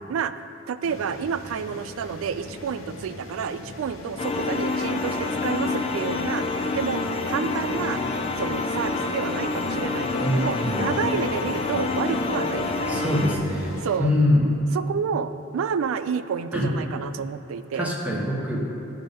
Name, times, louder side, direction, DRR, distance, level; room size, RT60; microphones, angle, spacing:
voice 1, 0.7-8.0 8.4-13.2 13.8-14.1 14.7-17.9, right 7 dB, 85° right, 13 dB, 0.3 m, -30 dB
sound 1, 0.8-14.0, left 1 dB, 80° left, 0.7 m, -39 dB
sound 2, 4.2-13.4, left 3 dB, 30° left, 0.4 m, -27 dB
voice 2, 10.2-11.0 12.9-14.5 16.5-16.7 17.7-18.6, left 1 dB, 5° right, -3 dB, 1.0 m, -24 dB
10.0 x 3.6 x 5.2 m, 2.9 s
head